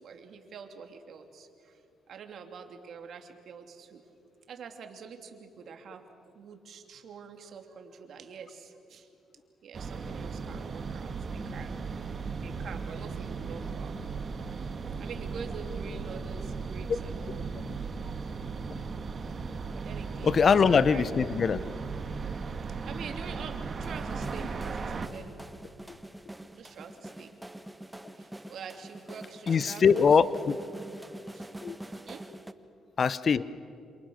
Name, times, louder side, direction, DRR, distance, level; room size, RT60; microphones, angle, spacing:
voice 1, 0.0-1.8 2.1-4.0 4.5-9.1 9.6-11.8 12.1-14.0 14.3-17.5 18.2-18.3 19.2-21.0 22.8-25.4 26.6-27.3 28.2-30.1 30.3-30.5 31.3-31.5 32.0-32.3, right 6 dB, 65° right, 5 dB, 2.9 m, -46 dB
sound 1, 9.7-25.1, right 4 dB, 40° right, 1.7 m, -37 dB
voice 2, 20.2-21.7 25.9-26.0 29.5-30.6 31.6-31.8 33.0-33.4, left 6 dB, 45° left, 16 dB, 0.8 m, -23 dB
sound 2, 23.8-32.5, right 1 dB, 10° right, 1.3 m, -45 dB
27.5 x 27.5 x 6.5 m, 2.5 s
cardioid pair, 90°, 0 cm